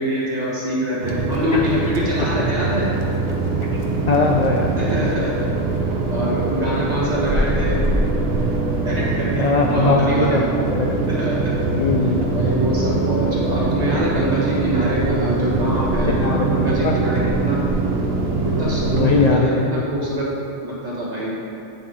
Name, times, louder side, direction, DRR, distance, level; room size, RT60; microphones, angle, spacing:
voice 1, 0.0-2.9 4.8-5.5 6.1-7.8 8.8-10.4 11.1-11.6 12.3-17.6 18.4-20.3 20.6-21.4, equal, 35° right, -7 dB, 1.8 m, -25 dB
sound 1, 1.0-19.3, right 3 dB, 60° right, 0.9 m, -22 dB
voice 2, 4.1-5.1 9.4-10.5 10.7-10.9 11.7-12.2 16.2-16.5 16.8-17.0 18.9-19.8, left 4 dB, 65° left, 1 dB, 0.4 m, -20 dB
8.8 x 7.0 x 3.1 m, 2.7 s
omnidirectional pair, 1.2 m